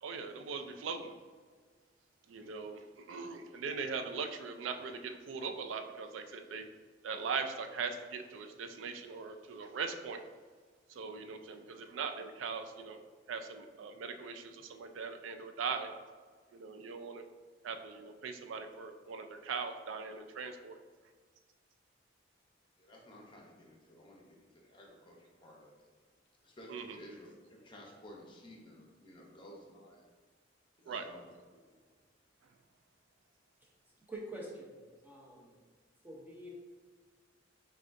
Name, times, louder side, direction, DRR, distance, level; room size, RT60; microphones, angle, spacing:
voice 1, 0.0-1.2 2.3-6.7 7.0-10.3 10.9-13.0 13.3-15.9 16.5-17.3 17.6-20.8 26.7-27.0 30.9-31.0, right 5 dB, 85° right, 6 dB, 0.4 m, -40 dB
voice 2, 22.8-25.9 26.4-30.0 30.8-31.8, left 1 dB, 25° left, -1 dB, 0.7 m, -54 dB
voice 3, 34.1-35.5 36.0-36.5, right 1 dB, 10° right, -2 dB, 0.7 m, -46 dB
6.1 x 2.3 x 2.6 m, 1.5 s
head